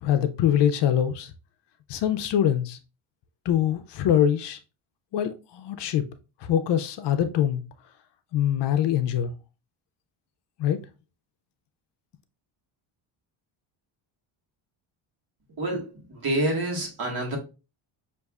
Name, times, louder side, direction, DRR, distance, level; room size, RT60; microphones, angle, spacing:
voice 1, 0.0-1.3 1.9-2.8 3.5-4.6 5.1-6.0 6.4-7.6 8.3-9.3 10.6-10.8, left 10 dB, 60° left, 0.6 m, -23 dB
voice 2, 15.6-17.4, right 1 dB, 45° right, 1.6 m, -28 dB
6.3 x 2.6 x 2.3 m
cardioid pair, 120°, 49 cm